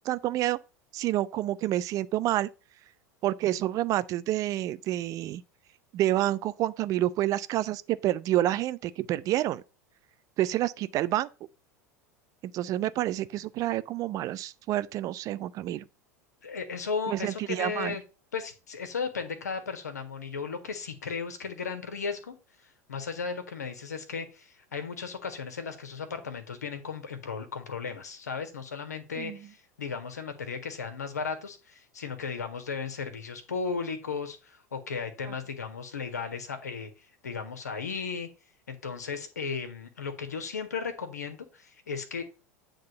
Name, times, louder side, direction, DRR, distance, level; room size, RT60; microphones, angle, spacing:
voice 1, 0.0-0.6 0.9-2.5 3.2-5.4 5.9-9.6 10.4-11.3 12.4-15.8 17.1-17.9 29.2-29.4, right 14 dB, 40° right, 0.6 m, -28 dB
voice 2, 16.4-18.0 18.3-22.4 22.6-38.3 38.7-42.2, left 5 dB, 75° left, 1.7 m, -35 dB
9.5 x 3.8 x 5.4 m
figure-of-eight pair, 80°, 9 cm